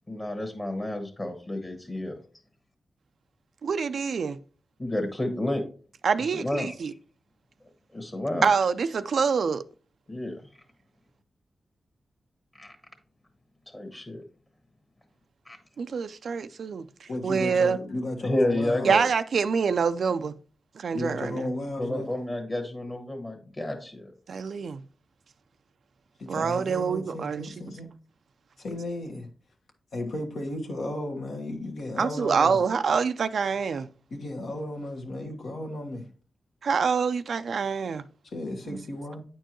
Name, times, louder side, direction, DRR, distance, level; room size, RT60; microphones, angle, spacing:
voice 1, 0.1-2.2 4.8-5.6 6.2-6.7 7.9-8.4 10.1-10.4 12.6-12.7 13.7-14.2 15.4-15.6 18.2-19.0 21.8-24.1, left 1 dB, 30° left, 1.3 m, -30 dB
voice 2, 3.6-4.4 6.0-6.9 8.4-9.6 15.8-17.8 18.8-20.3 20.8-21.5 24.3-24.8 26.3-27.5 32.0-33.9 36.6-38.0 38.7-38.8, right 5 dB, 75° right, 0.3 m, -26 dB
voice 3, 17.1-18.9 20.9-22.1 26.2-27.9 28.6-29.3 29.9-32.6 34.1-36.1 38.3-39.2, left 1 dB, 80° left, 1.3 m, -34 dB
8.9 x 4.5 x 3.0 m
cardioid pair, 55°, 0 cm